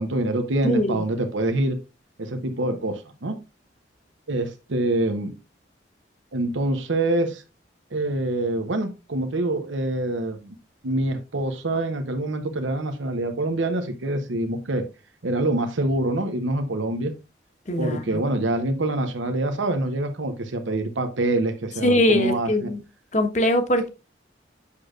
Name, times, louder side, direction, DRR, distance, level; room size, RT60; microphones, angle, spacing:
voice 1, 0.0-1.8 2.2-3.4 4.3-5.3 6.3-7.4 7.9-10.5 10.8-14.8 15.2-17.1 17.8-22.7, right 2 dB, 85° right, 7 dB, 0.8 m, -25 dB
voice 2, 0.6-1.0 17.7-18.0 21.8-22.8 23.1-23.9, left 1 dB, 40° left, 6 dB, 1.1 m, -21 dB
8.4 x 6.5 x 2.4 m, 0.27 s
head